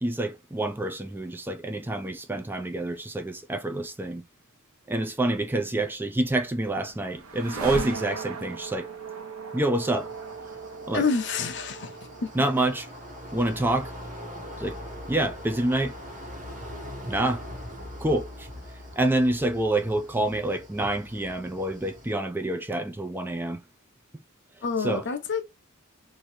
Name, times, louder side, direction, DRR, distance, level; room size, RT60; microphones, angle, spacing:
voice 1, 0.0-4.2 4.9-8.9 9.5-10.1 10.9-11.1 12.3-12.9 13.3-13.9 14.6-14.8 15.1-16.0 17.1-17.4 18.0-18.5 19.0-23.6 24.8-25.1, right 1 dB, 10° right, 0.4 m, -27 dB
sound 1, 6.1-16.2, right 4 dB, 75° right, 0.8 m, -39 dB
sound 2, 9.8-22.1, equal, 35° right, 1.3 m, -42 dB
voice 2, 10.9-11.9 12.2-12.3 24.6-25.4, left 5 dB, 55° left, 0.7 m, -27 dB
3.1 x 2.6 x 4.1 m
head